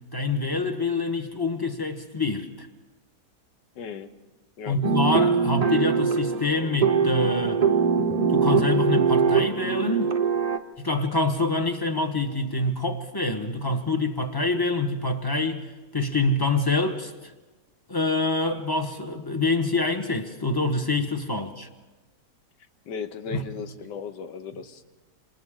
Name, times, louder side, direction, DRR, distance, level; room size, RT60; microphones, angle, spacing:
voice 1, 0.1-2.7 4.7-7.6 8.3-10.1 10.8-15.6 15.9-17.1 17.9-21.7 23.3-23.4, left 2 dB, 15° left, 1.0 m, -26 dB
voice 2, 3.7-4.1 4.6-4.8 22.9-24.8, left 5 dB, 85° left, 1.6 m, -36 dB
sound 1, 4.8-10.6, right 5 dB, 45° right, 0.5 m, -22 dB
28.0 x 27.5 x 3.8 m
omnidirectional pair, 1.8 m